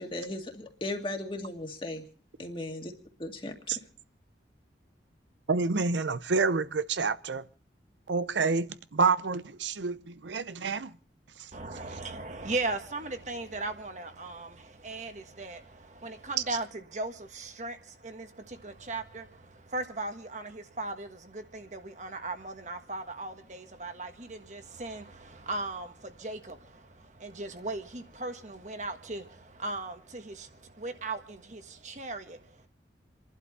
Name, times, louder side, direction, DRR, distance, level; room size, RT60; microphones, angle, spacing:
voice 1, 0.0-2.0 2.4-2.9 3.2-3.8, left 1 dB, 30° left, 2.0 m, -37 dB
voice 2, 5.5-7.4 8.1-10.9, right 4 dB, 90° right, 0.7 m, -28 dB
voice 3, 11.5-32.7, right 2 dB, 40° right, 1.5 m, -38 dB
28.0 x 11.5 x 4.1 m
head